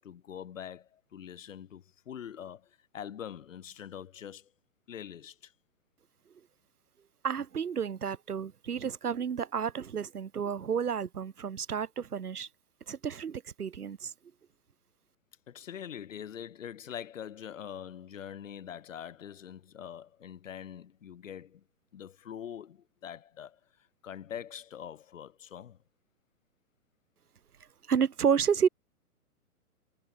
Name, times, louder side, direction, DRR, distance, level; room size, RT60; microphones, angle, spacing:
voice 1, 0.0-4.5 4.9-5.5 15.5-21.6 21.9-23.6 24.0-25.8, left 9 dB, 55° left, 4.6 m, -44 dB
voice 2, 7.2-12.5 12.9-14.1 27.9-28.7, right 7 dB, 80° right, 0.9 m, -30 dB
figure-of-eight pair, 120°, 45 cm